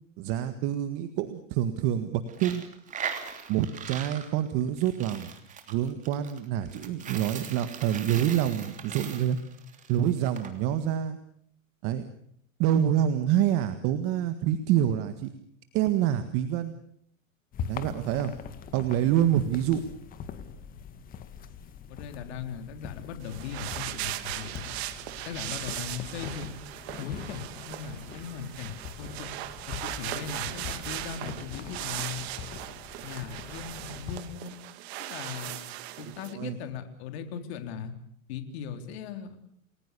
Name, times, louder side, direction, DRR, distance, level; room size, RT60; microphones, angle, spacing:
voice 1, 0.2-2.6 3.5-5.3 5.7-9.4 9.9-11.2 11.8-12.0 12.6-15.3 15.7-16.7 17.7-18.3 18.7-19.8 36.0-36.6, right 10 dB, 35° right, 10 dB, 1.8 m, -27 dB
Coin (dropping), 2.3-10.5, right 7 dB, 20° right, 3.2 m, -40 dB
sound 1, 17.5-34.2, left 7 dB, 20° left, 2.0 m, -42 dB
voice 2, 21.9-24.7 25.2-26.5 27.0-29.3 29.7-32.2 33.0-34.6 35.0-35.7 36.0-37.9 38.3-39.4, left 7 dB, 50° left, 7 dB, 4.1 m, -39 dB
sound 2, 23.2-36.3, right 15 dB, 50° right, 2.3 m, -38 dB
30.0 x 20.5 x 6.9 m, 0.67 s
supercardioid pair, 155°, 41 cm